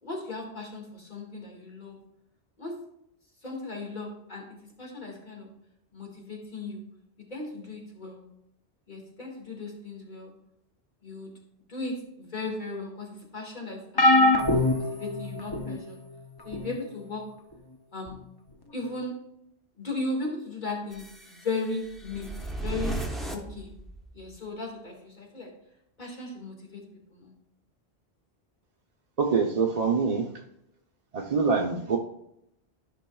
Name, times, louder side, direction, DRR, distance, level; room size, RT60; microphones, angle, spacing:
voice 1, 0.0-2.0 2.6-2.7 3.4-4.4 4.8-5.5 5.9-6.8 7.3-8.2 8.9-10.3 11.0-11.3 11.7-13.8 14.1-14.3 14.8-16.0 16.4-17.2 17.9-18.2 18.7-19.1 19.8-23.7 24.1-25.5 26.0-26.8 27.1-27.3, left 3 dB, 45° left, -1 dB, 2.0 m, -36 dB
sound 1, 14.0-15.8 16.5-16.8 18.1-18.2, left 2 dB, 25° left, 0.6 m, -23 dB
sound 2, 20.9-24.4, right 2 dB, ahead, 1.0 m, -36 dB
voice 2, 29.2-30.3 31.1-32.0, right 5 dB, 40° right, 0 dB, 0.7 m, -25 dB
13.5 x 5.5 x 2.3 m, 0.79 s
omnidirectional pair, 1.1 m